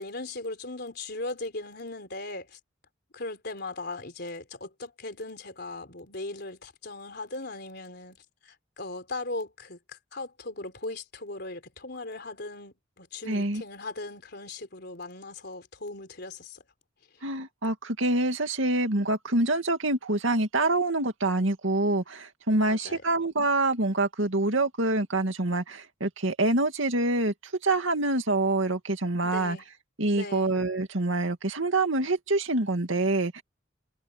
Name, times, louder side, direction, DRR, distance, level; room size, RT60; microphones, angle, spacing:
voice 1, 0.0-2.6 3.1-8.2 8.4-9.8 10.1-16.6 22.7-23.0 29.2-29.6 30.1-30.5, left 2 dB, 55° left, 3.9 m, -38 dB
voice 2, 13.3-13.6 17.2-29.6 30.0-33.4, right 2 dB, 75° right, 2.3 m, -26 dB
head